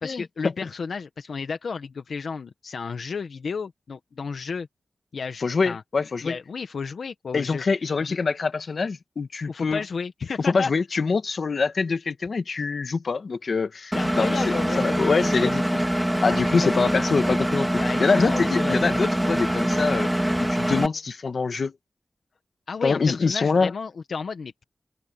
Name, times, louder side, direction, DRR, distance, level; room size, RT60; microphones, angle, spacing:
voice 1, 0.0-4.7 5.1-7.6 8.0-8.2 9.5-10.7 13.9-15.5 16.4-17.0 17.7-18.8 22.7-24.6, left 5 dB, 80° left, 1.3 m, -32 dB
voice 2, 5.4-6.4 7.3-9.8 10.5-15.6 16.2-17.7 18.0-20.1 20.4-21.7 22.8-23.7, left 4 dB, 65° left, 1.6 m, -24 dB
Engine, 13.9-20.9, equal, 5° right, 2.9 m, -24 dB
wide cardioid pair, 105°, 0 cm